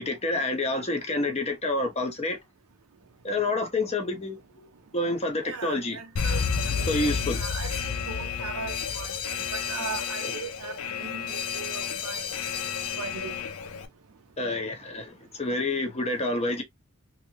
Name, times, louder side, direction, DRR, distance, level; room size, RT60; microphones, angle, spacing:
voice 1, 0.0-2.4 3.2-4.7 4.9-6.0 6.9-7.4 10.2-10.4 14.4-16.6, left 2 dB, 30° left, 1.0 m, -28 dB
voice 2, 5.4-7.7 8.1-12.3 13.0-13.4, right 6 dB, 80° right, 0.5 m, -39 dB
Alarm, 6.2-13.9, left 6 dB, 80° left, 0.6 m, -31 dB
3.4 x 2.8 x 2.8 m
head